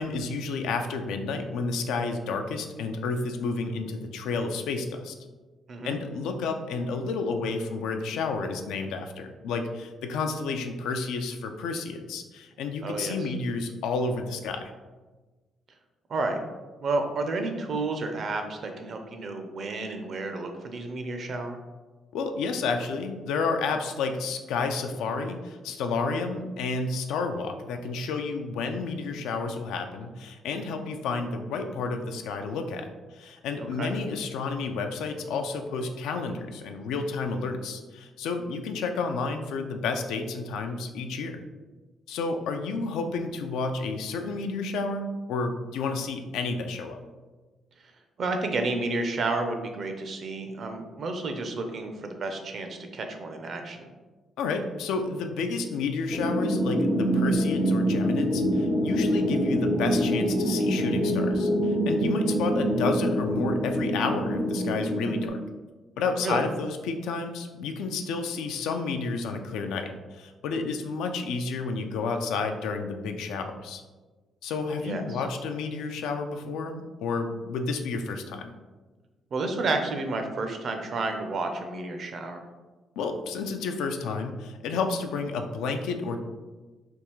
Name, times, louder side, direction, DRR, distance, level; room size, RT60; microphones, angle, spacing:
voice 1, 0.0-5.1 5.8-14.7 22.1-41.4 42.1-47.0 54.4-65.4 66.0-73.8 74.4-78.5 83.0-86.2, left 4 dB, 90° left, 6 dB, 0.3 m, -31 dB
voice 2, 12.8-13.1 16.1-16.4 16.8-21.6 33.6-33.9 48.2-53.9 66.2-66.4 74.8-75.0 79.3-82.5, right 3 dB, 55° right, 5 dB, 0.5 m, -31 dB
sound 1, 56.1-65.3, equal, 5° left, 0.4 m, -25 dB
3.4 x 2.3 x 3.0 m, 1.3 s
cardioid pair, 90°, 0 cm